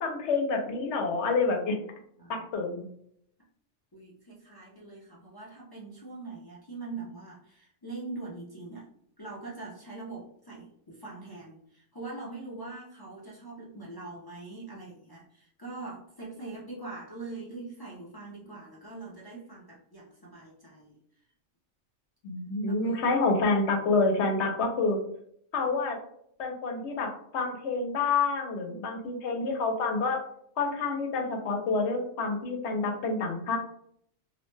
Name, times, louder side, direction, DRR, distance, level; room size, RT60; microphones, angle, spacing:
voice 1, 0.0-1.8 2.3-2.8 22.2-25.0 25.5-26.0 26.4-30.2 30.6-33.6, left 3 dB, 75° left, 3 dB, 0.9 m, -28 dB
voice 2, 3.9-8.9 9.2-21.0 22.6-23.1, right 3 dB, 35° left, -6 dB, 0.4 m, -42 dB
2.7 x 2.1 x 3.1 m, 0.69 s
omnidirectional pair, 1.2 m